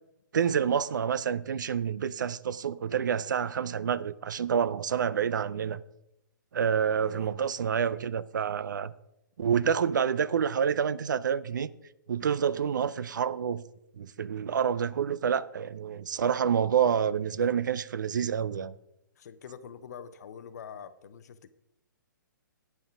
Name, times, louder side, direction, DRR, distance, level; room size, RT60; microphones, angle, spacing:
voice 1, 0.3-5.8 6.5-8.9 9.4-11.7 12.1-13.6 14.0-18.7, right 7 dB, 65° right, 0.4 m, -28 dB
voice 2, 7.0-7.4 19.2-21.5, left 7 dB, 55° left, 0.6 m, -45 dB
9.2 x 7.0 x 5.1 m
figure-of-eight pair, 125°, 11 cm